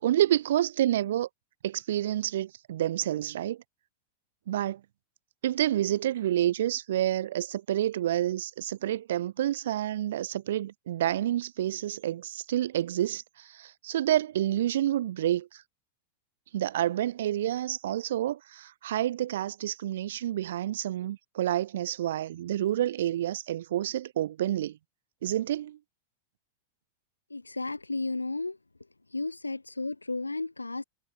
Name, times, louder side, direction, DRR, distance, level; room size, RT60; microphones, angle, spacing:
voice 1, 0.0-1.3 1.6-3.6 4.5-4.8 5.4-13.2 13.6-15.5 16.5-24.7 25.2-25.8, right 12 dB, 60° right, 5.3 m, -28 dB
voice 2, 27.3-28.6 29.1-30.8, left 3 dB, 80° left, 1.6 m, -33 dB
figure-of-eight pair, 90°, 0 cm